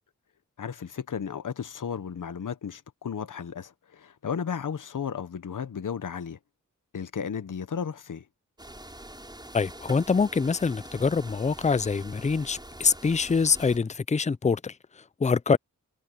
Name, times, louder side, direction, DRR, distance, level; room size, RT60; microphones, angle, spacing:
voice 1, 0.6-6.4 6.9-8.2 15.5-15.6, left 7 dB, 70° left, 1.0 m, -34 dB
sound 1, 8.6-13.8, right 1 dB, 15° right, 6.3 m, -45 dB
voice 2, 9.5-15.6, left 5 dB, 20° left, 0.5 m, -25 dB
cardioid pair, 60°, 32 cm